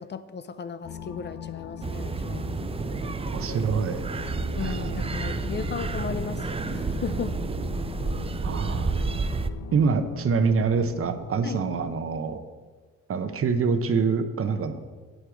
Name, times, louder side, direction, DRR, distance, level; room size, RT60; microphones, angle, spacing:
voice 1, 0.0-2.5 4.6-7.4 11.4-11.6, left 6 dB, 35° left, 13 dB, 0.5 m, -35 dB
sound 1, 0.8-12.0, left 7 dB, 60° left, 0.8 m, -40 dB
sound 2, 1.8-9.5, right 4 dB, 20° right, 0.5 m, -30 dB
voice 2, 3.3-4.1 4.6-5.0 8.4-8.9 9.7-12.4 13.1-14.8, right 5 dB, 45° right, 9 dB, 0.9 m, -25 dB
8.8 x 7.9 x 5.0 m, 1.4 s
cardioid pair, 90°, 30 cm